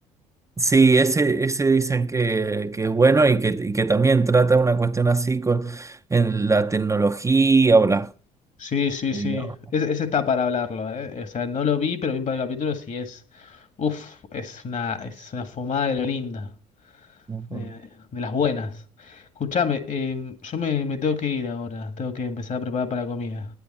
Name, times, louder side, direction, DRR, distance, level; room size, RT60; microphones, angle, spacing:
voice 1, 0.6-8.1 9.1-9.5 17.3-17.7, right 4 dB, 20° right, 0.7 m, -20 dB
voice 2, 8.6-16.5 17.5-17.8 18.1-23.5, left 6 dB, 45° left, 1.9 m, -27 dB
10.5 x 9.3 x 4.2 m
hypercardioid pair, 65°, 17 cm